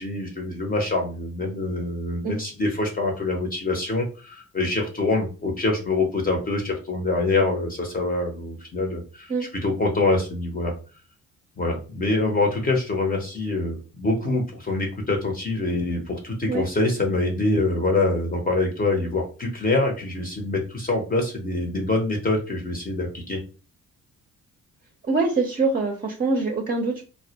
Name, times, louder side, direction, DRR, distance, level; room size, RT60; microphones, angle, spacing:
voice 1, 0.0-10.7 11.6-23.4, left 2 dB, 30° left, 1 dB, 0.7 m, -25 dB
voice 2, 25.0-27.0, right 3 dB, 30° right, 2 dB, 0.6 m, -24 dB
2.1 x 2.1 x 2.8 m, 0.35 s
cardioid pair, 90°, 30 cm